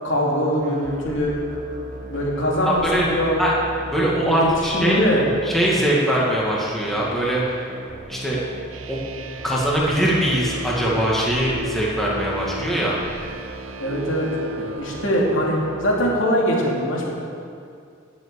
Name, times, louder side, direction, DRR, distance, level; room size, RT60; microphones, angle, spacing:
voice 1, 0.0-1.4 2.0-3.4 4.3-4.5 4.7-5.3 13.8-14.3 14.6-17.1, equal, 70° left, -3 dB, 3.1 m, -22 dB
sound 1, 0.6-16.3, right 2 dB, 45° right, 0.8 m, -37 dB
voice 2, 2.7-3.1 3.4-3.5 3.9-5.0 5.4-7.6 8.1-8.4 8.9-9.0 9.4-13.0, equal, ahead, -5 dB, 2.1 m, -21 dB
sound 2, 8.7-16.2, right 1 dB, 90° right, 0.8 m, -35 dB
18.0 x 7.3 x 7.0 m, 2.4 s
head